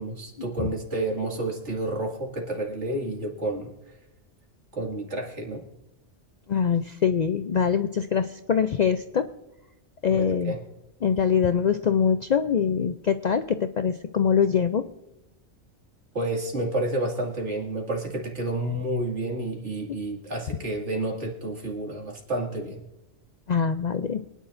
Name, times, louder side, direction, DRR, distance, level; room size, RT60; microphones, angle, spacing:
voice 1, 0.0-3.7 4.7-5.7 10.1-10.6 16.1-22.8, right 2 dB, 75° right, 1 dB, 2.5 m, -30 dB
voice 2, 6.5-9.3 10.0-10.5 11.0-14.8 19.9-20.0 23.5-24.2, left 7 dB, 60° left, 10 dB, 0.4 m, -23 dB
24.0 x 10.0 x 2.6 m, 0.99 s
omnidirectional pair, 1.2 m